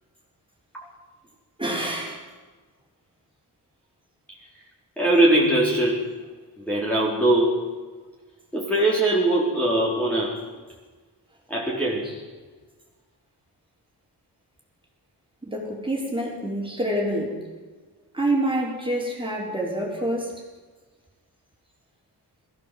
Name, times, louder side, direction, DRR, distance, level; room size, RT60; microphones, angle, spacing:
voice 1, 1.6-2.2 12.0-12.1 15.5-17.3 18.1-20.3, right 1 dB, 15° right, -2 dB, 5.0 m, -27 dB
voice 2, 5.0-6.0 6.7-7.7 8.5-10.4 11.5-12.0, right 1 dB, 5° left, -6 dB, 4.3 m, -21 dB
21.5 x 15.5 x 7.8 m, 1.4 s
wide cardioid pair, 120°, 39 cm